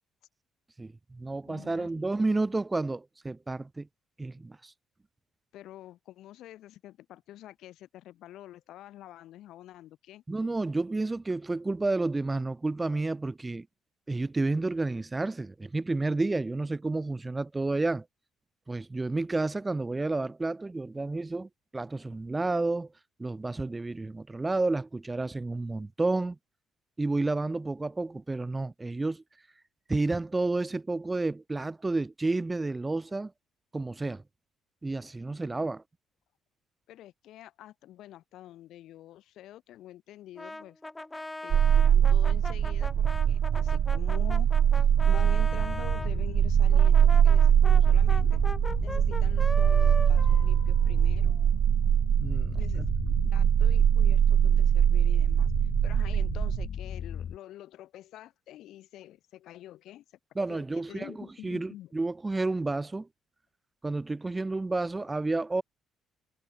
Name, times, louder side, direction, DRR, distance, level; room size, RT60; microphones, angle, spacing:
voice 1, 0.8-3.9 4.2-4.7 10.3-13.7 14.1-18.0 18.7-22.9 23.2-26.4 27.0-29.2 29.9-33.3 33.7-34.2 34.8-35.8 52.2-52.8 60.3-63.1 63.8-65.6, right 2 dB, 20° right, 3.3 m, -30 dB
voice 2, 1.5-1.9 5.5-10.2 35.6-35.7 36.9-40.8 41.4-44.5 44.7-48.4 48.8-51.4 52.5-60.0 60.5-61.9, left 13 dB, 75° left, 4.4 m, -47 dB
Brass instrument, 40.4-46.1 46.7-51.5, left 2 dB, 15° left, 1.7 m, -40 dB
sound 1, 41.5-56.7, right 9 dB, 60° right, 0.5 m, -22 dB
sound 2, 44.9-57.4, left 8 dB, 55° left, 2.6 m, -38 dB
supercardioid pair, 70°, 0 cm